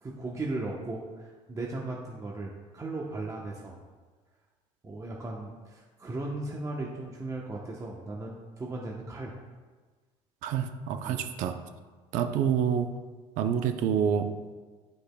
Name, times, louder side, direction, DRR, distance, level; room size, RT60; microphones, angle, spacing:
voice 1, 0.0-3.8 4.8-9.4 11.0-11.3, right 2 dB, 25° right, -2 dB, 0.9 m, -37 dB
voice 2, 10.4-11.6 12.1-12.9 13.4-14.3, right 8 dB, 70° right, 8 dB, 0.6 m, -27 dB
11.5 x 4.9 x 2.2 m, 1.4 s
supercardioid pair, 100°, 14 cm